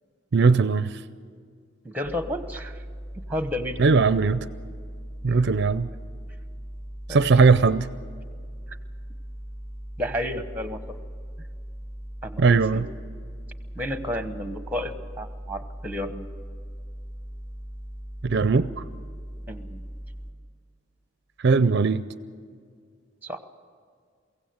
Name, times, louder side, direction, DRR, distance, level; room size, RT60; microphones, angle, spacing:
voice 1, 0.3-1.0 3.8-4.5 5.2-5.9 7.1-7.9 12.4-12.8 18.2-18.8 21.4-22.1, right 4 dB, 55° right, 14 dB, 0.5 m, -19 dB
voice 2, 1.8-2.8 3.3-3.9 5.3-5.4 7.1-7.3 8.7-8.8 10.0-11.0 12.2-12.8 13.7-16.3 19.5-19.8 23.2-23.4, left 1 dB, 10° right, 9 dB, 1.0 m, -32 dB
sound 1, 2.0-20.3, equal, 10° left, 3.4 m, -39 dB
23.0 x 16.5 x 8.0 m, 2.1 s
head